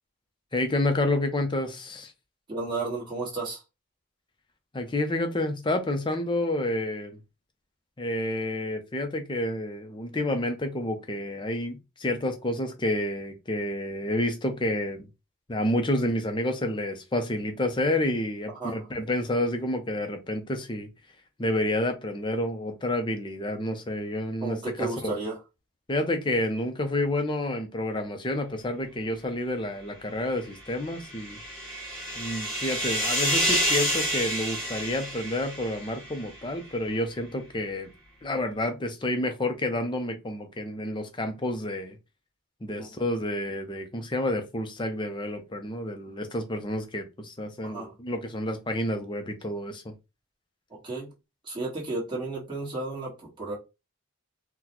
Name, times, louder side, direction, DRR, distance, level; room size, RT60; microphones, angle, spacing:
voice 1, 0.5-2.1 4.7-7.2 8.0-15.1 15.5-20.9 21.4-25.1 25.9-31.4 32.2-37.9 38.2-42.0 42.6-49.9, left 1 dB, 20° left, 0.5 m, -29 dB
voice 2, 2.5-3.6 18.6-18.9 24.4-25.4 42.7-42.9 47.6-47.9 50.7-51.1 51.4-53.5, right 3 dB, 20° right, 1.4 m, -33 dB
sound 1, 30.7-36.2, equal, 5° left, 1.2 m, -29 dB
3.9 x 2.2 x 2.9 m
head